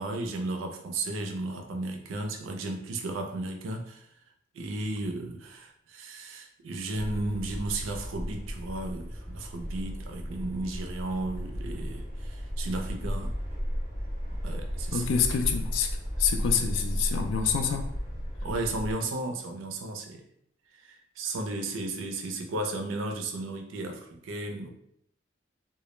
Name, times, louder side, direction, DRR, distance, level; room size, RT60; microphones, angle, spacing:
voice 1, 0.0-4.1 4.5-13.3 14.4-15.0 18.4-20.2 20.7-24.7, right 2 dB, 85° right, 4 dB, 0.4 m, -34 dB
sound 1, 6.9-18.9, equal, 30° left, 0.6 m, -34 dB
voice 2, 14.9-15.9 16.2-17.9, left 7 dB, 75° left, 6 dB, 0.3 m, -27 dB
2.2 x 2.0 x 3.0 m, 0.73 s
head